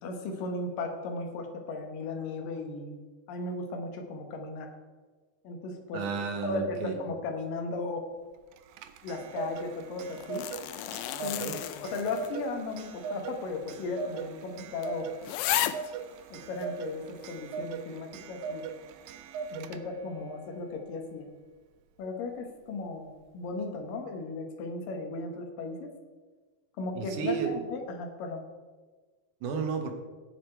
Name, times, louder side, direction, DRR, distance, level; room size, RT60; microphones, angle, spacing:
voice 1, 0.0-3.0 3.3-4.7 5.4-6.0 6.4-8.1 9.0-10.5 11.2-11.5 11.8-15.1 16.3-18.6 19.5-21.3 22.0-25.9 26.8-28.4, left 3 dB, 70° left, 4 dB, 2.9 m, -36 dB
voice 2, 5.9-7.0 11.4-11.5 27.0-27.5 29.4-29.9, right 6 dB, 65° right, 5 dB, 2.3 m, -32 dB
Clock, 8.5-20.1, right 5 dB, 85° right, 1.7 m, -40 dB
sound 1, 10.0-12.5 12.8-12.9 13.7-13.8 14.2-14.3 14.8-14.9 15.2-15.9 16.6-16.7, left 14 dB, 85° left, 1.9 m, -33 dB
16.0 x 6.6 x 4.5 m, 1.4 s
omnidirectional pair, 4.2 m